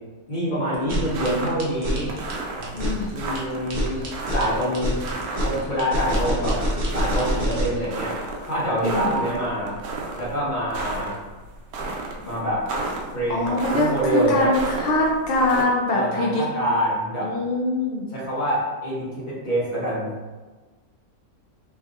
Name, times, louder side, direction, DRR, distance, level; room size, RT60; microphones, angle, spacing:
voice 1, 0.3-2.1 3.1-4.0 4.3-5.0 5.4-6.6 6.9-9.8 10.1-11.1 12.2-12.6 13.1-14.5 15.9-17.3 18.1-20.1, equal, 35° left, -8 dB, 1.2 m, -26 dB
sound 1, 0.7-7.8, equal, 50° right, 0.6 m, -26 dB
sound 2, 1.0-15.6, right 3 dB, 85° right, 1.1 m, -33 dB
voice 2, 2.7-3.1 8.8-9.1 13.3-16.4 17.2-18.1, left 2 dB, 75° left, -2 dB, 0.5 m, -23 dB
3.2 x 2.7 x 2.4 m, 1.3 s
omnidirectional pair, 1.5 m